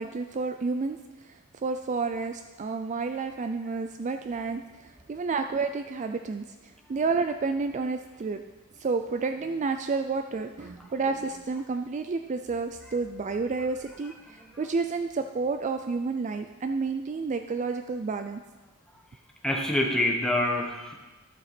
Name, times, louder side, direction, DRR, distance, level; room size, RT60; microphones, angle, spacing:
voice 1, 0.0-8.4 8.8-18.4, right 4 dB, 35° right, 7 dB, 0.4 m, -30 dB
voice 2, 14.0-14.5 19.4-20.9, left 1 dB, 5° left, -1 dB, 1.3 m, -27 dB
11.5 x 7.7 x 4.3 m, 1.2 s
head